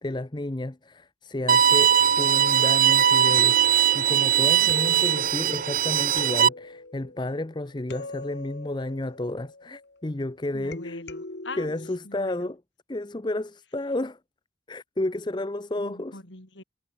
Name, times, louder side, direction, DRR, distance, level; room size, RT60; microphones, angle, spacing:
voice 1, 0.0-3.6 3.9-11.0 11.6-12.6 12.9-14.2 14.7-16.2, left 1 dB, 25° left, 0.6 m, -31 dB
Bowed string instrument, 1.5-6.5, right 9 dB, 45° right, 0.6 m, -20 dB
sound 1, 3.1-3.2 3.4-10.1 10.7-12.0, left 2 dB, 60° left, 1.5 m, -42 dB
voice 2, 10.5-11.7 12.0-12.5 15.8-16.6, left 2 dB, 75° left, 5.3 m, -42 dB
head